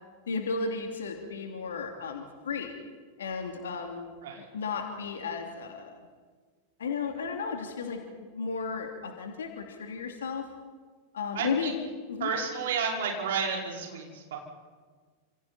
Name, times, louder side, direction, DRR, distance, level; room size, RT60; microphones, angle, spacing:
voice 1, 0.3-2.8 3.2-4.1 4.5-6.0 6.8-10.5 11.1-11.8 12.1-12.3, left 5 dB, 65° left, 3 dB, 2.9 m, -34 dB
voice 2, 11.3-11.7 12.2-14.4, right 5 dB, 60° right, 0 dB, 5.2 m, -31 dB
29.0 x 27.5 x 4.4 m, 1.5 s
figure-of-eight pair, 90°, 0 cm